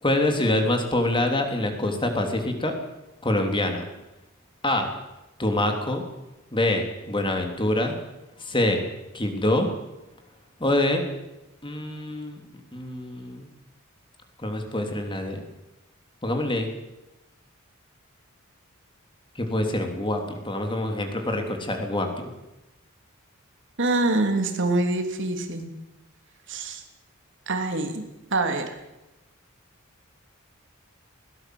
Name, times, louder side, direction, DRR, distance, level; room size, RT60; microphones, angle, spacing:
voice 1, 0.0-2.8 3.2-3.8 4.6-4.9 5.4-6.0 6.5-7.9 8.4-8.9 9.1-9.7 10.6-11.0 11.6-12.4 12.7-13.4 14.4-15.4 16.2-16.7 19.3-22.3, left 1 dB, 25° left, 4 dB, 3.1 m, -25 dB
voice 2, 23.8-25.7 26.5-26.8 27.5-28.0 28.3-28.7, right 2 dB, 60° right, 5 dB, 3.1 m, -25 dB
21.0 x 17.5 x 7.8 m, 0.97 s
head